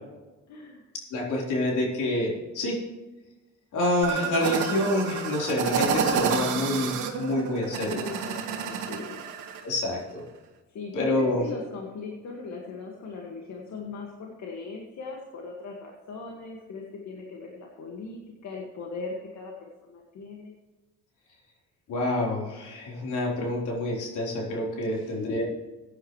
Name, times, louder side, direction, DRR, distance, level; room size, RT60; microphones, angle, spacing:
voice 1, 0.5-0.8 7.9-9.2 10.7-20.6 24.9-25.2, left 4 dB, 65° left, -1 dB, 2.0 m, -39 dB
voice 2, 1.1-2.8 3.7-8.0 9.6-10.2 10.9-11.4 21.9-25.4, left 1 dB, 80° left, -3 dB, 4.1 m, -27 dB
sound 1, 4.0-9.6, right 6 dB, 85° right, 1.6 m, -29 dB
16.0 x 9.9 x 3.2 m, 1.2 s
cardioid pair, 90°, 30 cm